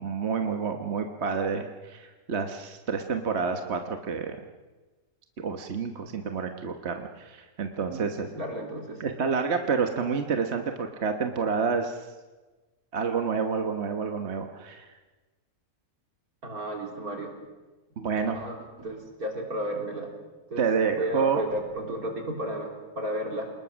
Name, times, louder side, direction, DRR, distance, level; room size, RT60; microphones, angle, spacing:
voice 1, 0.0-4.4 5.4-8.3 9.0-12.1 12.9-14.9 18.0-18.4 20.6-21.4, right 5 dB, 50° right, 5 dB, 1.4 m, -29 dB
voice 2, 7.9-9.0 16.4-17.3 18.3-20.1 20.5-20.6 20.9-23.5, right 1 dB, 75° right, 1 dB, 4.1 m, -33 dB
27.0 x 20.0 x 6.3 m, 1.2 s
omnidirectional pair, 1.6 m